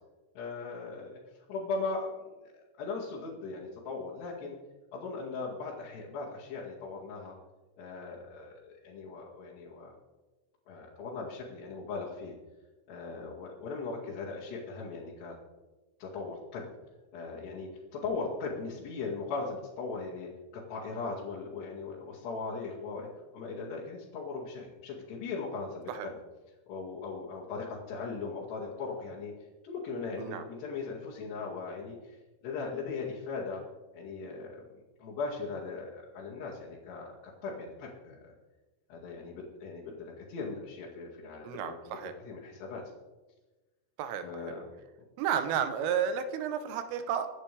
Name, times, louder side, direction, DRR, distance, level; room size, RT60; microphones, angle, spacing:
voice 1, 0.4-1.2 1.5-4.6 4.9-7.4 7.8-9.9 10.7-12.3 12.9-15.4 16.0-16.7 17.1-26.1 26.7-29.3 29.6-32.2 32.4-33.6 33.9-38.3 38.9-42.8 44.2-44.6, left 4 dB, 60° left, -8 dB, 4.1 m, -39 dB
voice 2, 41.4-42.1 44.0-44.5 45.2-47.3, right 8 dB, 90° right, 9 dB, 3.7 m, -32 dB
25.5 x 11.0 x 3.5 m, 1.2 s
omnidirectional pair, 5.6 m